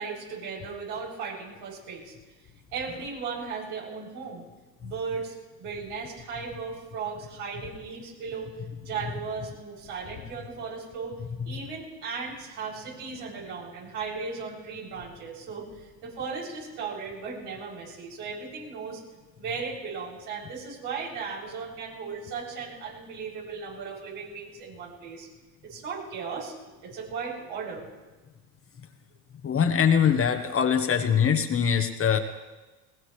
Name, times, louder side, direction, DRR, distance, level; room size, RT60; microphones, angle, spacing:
voice 1, 0.0-2.1 2.7-4.4 4.8-8.5 8.8-19.0 19.4-25.3 25.6-26.5 26.8-27.9, right 5 dB, 75° right, -4 dB, 7.6 m, -36 dB
voice 2, 29.4-32.2, left 7 dB, 30° left, 6 dB, 1.3 m, -22 dB
21.5 x 19.5 x 3.3 m, 1.2 s
hypercardioid pair, 90°, 47 cm